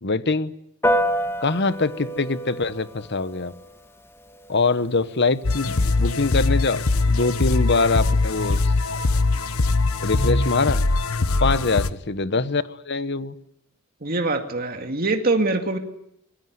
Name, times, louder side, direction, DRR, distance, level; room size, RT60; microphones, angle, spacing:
voice 1, 0.0-0.5 1.4-3.5 4.5-8.7 10.0-10.8 11.4-13.3, left 3 dB, 55° left, 14 dB, 1.2 m, -23 dB
Piano, 0.8-10.6, equal, 10° left, 1.9 m, -32 dB
sound 1, 5.4-11.9, left 3 dB, 80° left, 1.1 m, -22 dB
voice 2, 14.0-15.8, right 2 dB, 45° right, 5 dB, 2.2 m, -24 dB
25.0 x 20.5 x 9.6 m, 0.77 s
head